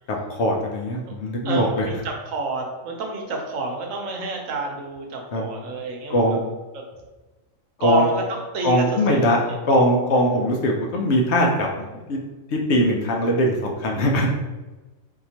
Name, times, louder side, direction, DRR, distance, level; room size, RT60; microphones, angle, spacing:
voice 1, 0.1-1.9 5.3-5.5 6.1-6.4 7.8-8.0 8.6-9.4 9.6-12.2 12.5-14.4, equal, 65° left, 0 dB, 0.8 m, -21 dB
voice 2, 1.4-6.4 6.7-6.8 7.8-8.9 9.1-9.6, right 2 dB, 75° right, 1 dB, 1.1 m, -28 dB
3.8 x 2.8 x 2.8 m, 1.2 s
omnidirectional pair, 1.4 m